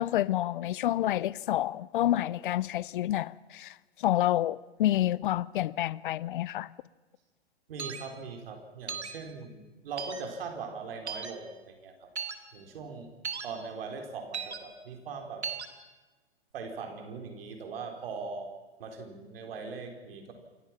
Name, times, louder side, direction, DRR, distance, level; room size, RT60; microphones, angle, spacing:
voice 1, 0.0-6.7, left 13 dB, 50° left, 0.6 m, -28 dB
voice 2, 7.7-12.1 12.5-13.1 13.4-15.5 16.5-18.5 18.8-20.3, right 4 dB, 60° right, 3.9 m, -40 dB
sound 1, 7.8-8.0 8.9-9.1 10.0-10.2 11.1-11.3 12.2-12.4 13.2-13.5 14.3-14.6 15.4-15.7, right 6 dB, 90° right, 2.1 m, -36 dB
27.5 x 16.0 x 5.9 m
hypercardioid pair, 130°, 32 cm